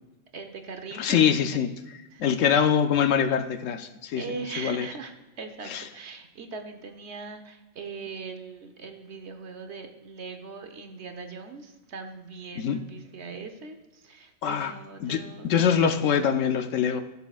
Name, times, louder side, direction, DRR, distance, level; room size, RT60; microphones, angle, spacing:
voice 1, 0.3-1.2 2.1-2.3 4.2-15.5, right 4 dB, 60° right, 6 dB, 1.1 m, -40 dB
voice 2, 1.0-4.2 4.6-4.8 5.7-5.8 12.6-12.8 14.4-14.7 15.0-17.0, left 8 dB, 75° left, 8 dB, 1.0 m, -24 dB
16.5 x 6.9 x 2.4 m, 1.1 s
omnidirectional pair, 1.4 m